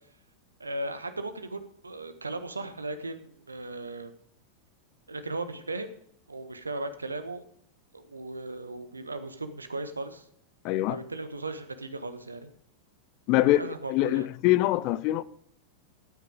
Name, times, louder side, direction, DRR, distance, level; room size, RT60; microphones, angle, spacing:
voice 1, 0.6-4.1 5.1-5.9 6.3-7.4 7.9-10.3 10.9-12.5 13.3-14.3, right 2 dB, 80° right, 1.3 m, -37 dB
voice 2, 10.6-11.0 13.3-15.2, left 16 dB, 40° left, 0.6 m, -24 dB
13.0 x 9.4 x 4.9 m
figure-of-eight pair, 90°, 0 cm